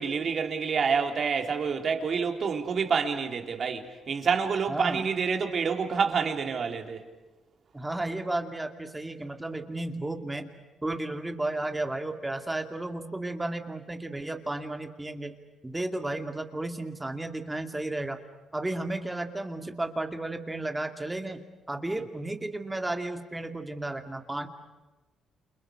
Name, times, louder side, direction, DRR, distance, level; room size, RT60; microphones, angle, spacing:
voice 1, 0.0-7.0, right 6 dB, 50° right, 3.7 m, -28 dB
voice 2, 4.7-5.1 7.7-10.5 10.8-15.3 15.6-18.2 18.5-24.5, right 2 dB, 15° right, 2.4 m, -33 dB
29.5 x 29.0 x 6.6 m
cardioid pair, 90°, 0 cm